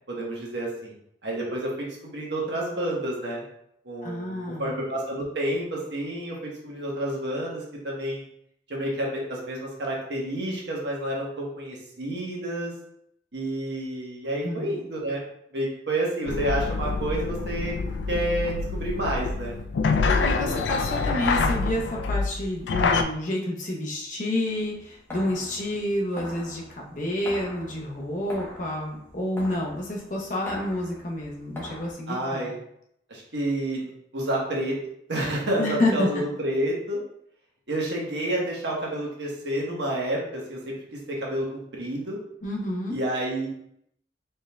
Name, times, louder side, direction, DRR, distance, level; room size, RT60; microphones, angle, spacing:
voice 1, 0.1-0.9 1.2-3.4 3.8-8.2 8.7-12.7 13.3-15.2 15.5-17.7 18.1-19.6 32.1-32.6 33.1-34.8 35.1-37.0 37.7-42.2 42.9-43.5, right 1 dB, 75° right, -3 dB, 1.1 m, -29 dB
voice 2, 4.0-4.7 14.4-14.7 20.1-32.5 35.6-36.2 42.4-43.0, left 1 dB, 45° left, -1 dB, 0.7 m, -29 dB
sound 1, 16.3-23.0, left 4 dB, 80° left, 0.3 m, -26 dB
sound 2, 24.5-31.9, left 1 dB, 15° left, 0.9 m, -42 dB
4.3 x 3.7 x 2.2 m, 0.73 s
head